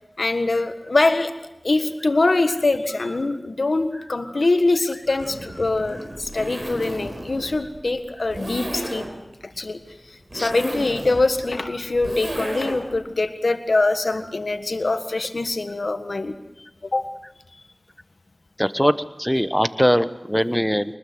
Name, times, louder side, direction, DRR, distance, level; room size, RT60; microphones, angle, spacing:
voice 1, 0.2-1.3 1.6-9.1 9.4-9.8 10.3-16.3 16.9-17.1, left 2 dB, 90° left, 9 dB, 1.6 m, -23 dB
Zipper (clothing), 5.1-13.0, right 1 dB, 60° right, 4.2 m, -34 dB
voice 2, 18.6-21.0, equal, 5° left, 13 dB, 1.0 m, -21 dB
24.0 x 20.0 x 7.9 m, 0.94 s
wide cardioid pair, 50°, 0 cm